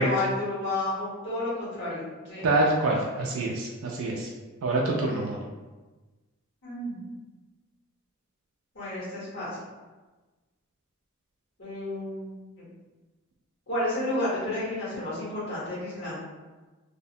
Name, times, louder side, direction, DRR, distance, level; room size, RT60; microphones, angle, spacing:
voice 1, 0.0-2.5 6.6-7.0 8.7-9.5 11.6-12.3 12.6-12.7 13.7-16.2, left 1 dB, 60° left, -9 dB, 1.2 m, -31 dB
voice 2, 2.4-4.3 4.6-5.4, right 2 dB, 70° right, -2 dB, 0.3 m, -26 dB
2.4 x 2.1 x 2.7 m, 1.2 s
head